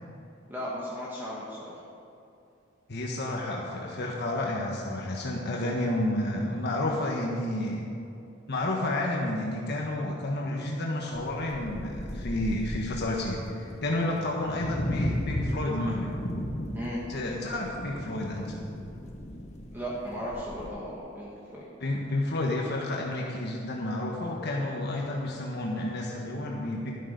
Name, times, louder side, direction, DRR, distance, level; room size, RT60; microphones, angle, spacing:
voice 1, 0.5-1.8 16.7-17.0 19.7-21.7, equal, 10° right, -6 dB, 1.7 m, -36 dB
voice 2, 2.9-7.8 8.5-16.1 17.1-18.6 21.8-26.9, left 1 dB, 55° left, -2 dB, 1.4 m, -30 dB
sound 1, 11.1-20.7, equal, 35° left, 1.1 m, -36 dB
12.0 x 12.0 x 5.3 m, 2.6 s
head